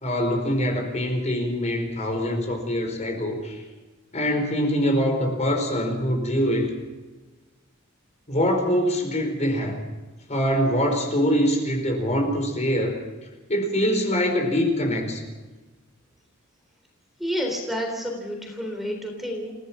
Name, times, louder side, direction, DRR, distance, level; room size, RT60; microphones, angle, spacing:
voice 1, 0.0-3.6 4.1-6.7 8.3-9.8 10.3-13.0 13.5-15.2, equal, 35° left, 3 dB, 4.6 m, -24 dB
voice 2, 17.2-19.5, equal, ahead, 2 dB, 3.7 m, -29 dB
29.0 x 16.5 x 6.0 m, 1.3 s
head